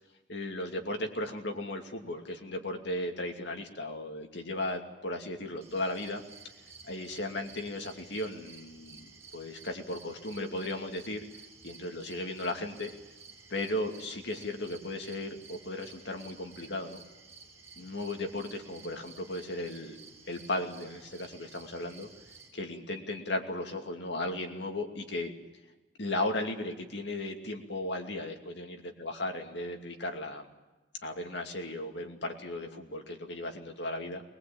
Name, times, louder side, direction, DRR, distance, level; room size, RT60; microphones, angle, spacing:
voice 1, 0.3-6.2 6.8-9.1 9.3-11.2 11.6-12.9 13.5-17.0 17.8-20.0 20.3-22.1 22.5-25.3 26.0-30.5 31.0-34.2, left 1 dB, 70° left, 4 dB, 2.7 m, -36 dB
sound 1, 5.6-22.5, right 4 dB, 15° right, 6.0 m, -53 dB
21.5 x 21.0 x 8.8 m, 1.1 s
head